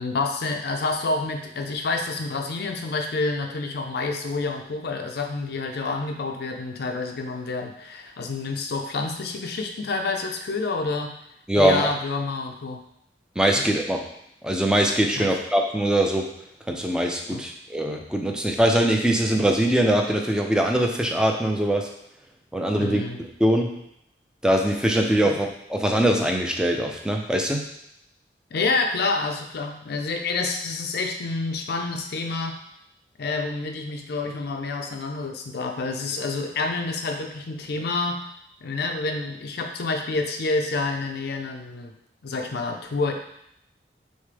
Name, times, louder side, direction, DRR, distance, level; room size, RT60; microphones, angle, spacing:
voice 1, 0.0-11.1 11.6-12.8 15.2-15.3 17.3-17.4 22.8-23.2 28.5-32.6 33.2-38.2 38.6-41.9 42.2-43.1, left 3 dB, 65° left, 3 dB, 0.5 m, -28 dB
voice 2, 11.5-11.9 13.4-14.0 14.4-16.3 16.7-21.9 22.5-23.8 24.4-27.7, right 1 dB, 5° right, 2 dB, 0.5 m, -22 dB
6.4 x 2.1 x 3.3 m, 0.75 s
head